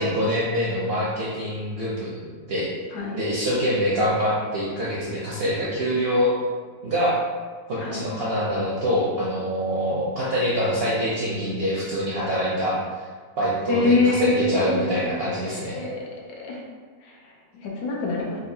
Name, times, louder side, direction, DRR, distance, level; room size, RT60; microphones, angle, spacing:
voice 1, 0.0-2.1 2.5-2.7 3.1-6.3 6.8-7.2 7.7-12.8 13.4-15.8, equal, 65° right, -6 dB, 0.6 m, -25 dB
voice 2, 2.9-3.2 7.8-8.0 13.7-16.0 16.4-16.6 17.0-18.4, left 2 dB, 90° left, -2 dB, 1.3 m, -25 dB
4.0 x 2.4 x 2.7 m, 1.5 s
omnidirectional pair, 1.6 m